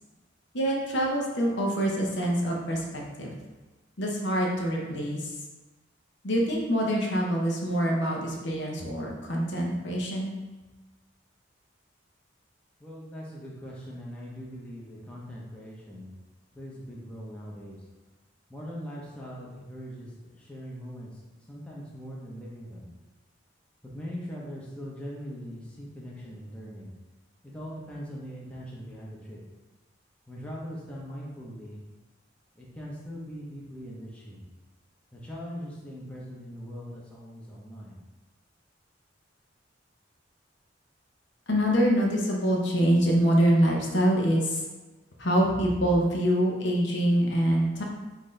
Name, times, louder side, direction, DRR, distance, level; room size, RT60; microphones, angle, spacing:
voice 1, 0.5-3.3 4.0-5.3 6.2-10.3 41.5-44.6 45.2-47.8, equal, 60° left, -1 dB, 0.8 m, -25 dB
voice 2, 12.8-16.1 16.5-17.9 18.5-22.9 23.8-26.9 27.4-29.4 30.3-31.8 32.5-34.4 35.1-38.0, equal, 5° left, -6 dB, 0.7 m, -41 dB
5.7 x 2.7 x 3.2 m, 1.2 s
head